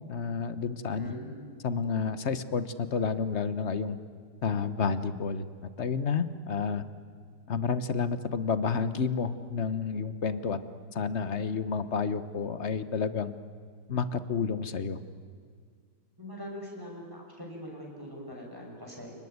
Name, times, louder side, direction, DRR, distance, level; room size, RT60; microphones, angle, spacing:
voice 1, 0.1-1.1 1.6-4.0 4.4-5.5 5.8-6.8 7.5-10.6 10.9-13.3 13.9-15.0, left 5 dB, 45° left, 13 dB, 1.2 m, -30 dB
voice 2, 1.0-1.3 16.2-19.1, equal, 10° right, -1 dB, 6.5 m, -42 dB
30.0 x 19.5 x 9.5 m, 2.1 s
omnidirectional pair, 2.0 m